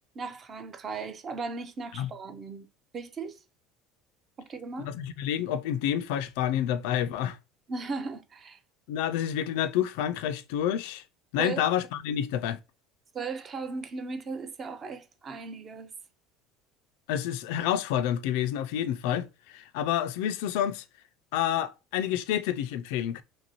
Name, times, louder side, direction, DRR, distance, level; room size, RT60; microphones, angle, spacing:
voice 1, 0.2-2.7 2.9-3.4 4.4-4.9 7.7-8.6 11.4-11.6 13.1-15.9, right 4 dB, 20° right, 0.4 m, -37 dB
voice 2, 4.8-7.4 8.9-11.0 11.3-12.6 17.1-20.8 21.3-23.2, left 10 dB, 75° left, 0.3 m, -29 dB
3.0 x 2.6 x 2.9 m
cardioid pair, 175°, 0 cm